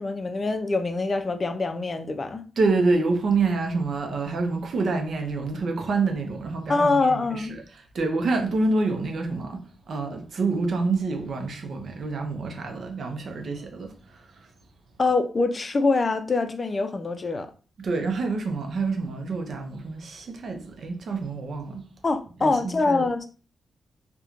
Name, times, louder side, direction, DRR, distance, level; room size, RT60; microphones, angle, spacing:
voice 1, 0.0-2.4 6.7-7.5 15.0-17.5 22.0-23.2, left 3 dB, 40° left, 0.4 m, -24 dB
voice 2, 2.6-14.5 17.8-21.9 22.4-23.1, right 3 dB, 65° right, 0.5 m, -27 dB
3.0 x 2.1 x 2.4 m
cardioid pair, 75°, 0 cm